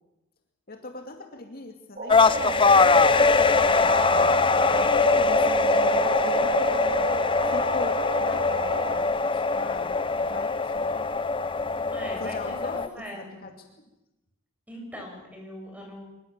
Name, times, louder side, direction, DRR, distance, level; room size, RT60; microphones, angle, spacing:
voice 1, 0.7-6.8 7.4-9.0 9.3-10.9 12.2-12.8 13.1-13.5, left 2 dB, 45° left, 4 dB, 2.3 m, -40 dB
sound 1, 2.0-9.0, right 4 dB, 40° right, 4.2 m, -31 dB
sound 2, 2.1-12.9, left 4 dB, 25° left, 0.9 m, -22 dB
voice 2, 11.9-13.4 14.7-16.0, equal, 5° right, 0 dB, 7.5 m, -40 dB
24.5 x 22.0 x 7.4 m, 0.95 s
head